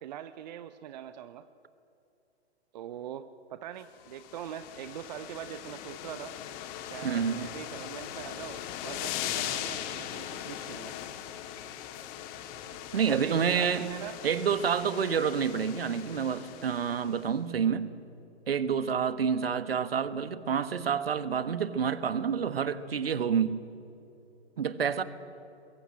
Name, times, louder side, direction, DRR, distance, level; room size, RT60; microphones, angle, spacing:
voice 1, 0.0-1.5 2.7-6.3 6.8-10.9 13.1-14.2, right 10 dB, 40° right, 12 dB, 0.8 m, -42 dB
sound 1, 4.0-17.2, left 11 dB, 25° left, 1.6 m, -40 dB
voice 2, 7.0-7.5 12.9-13.9 14.2-17.9 18.5-23.6 24.6-25.0, right 7 dB, 60° right, 14 dB, 1.5 m, -28 dB
25.0 x 22.0 x 8.9 m, 2.8 s
figure-of-eight pair, 115°, 33 cm